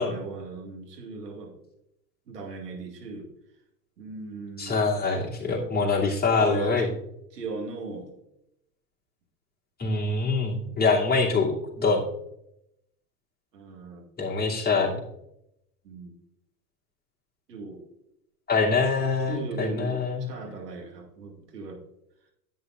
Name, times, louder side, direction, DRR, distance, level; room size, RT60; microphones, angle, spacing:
voice 1, 0.0-1.6 2.3-3.3 4.0-4.8 6.4-6.9 7.3-8.1 13.5-14.0 15.8-16.1 17.5-17.8 19.3-21.8, right 3 dB, 80° right, 1 dB, 2.3 m, -38 dB
voice 2, 4.6-6.9 9.8-12.0 14.2-15.0 18.5-20.3, left 4 dB, 20° left, -4 dB, 2.7 m, -24 dB
11.0 x 8.5 x 2.5 m, 0.81 s
hypercardioid pair, 100°, 47 cm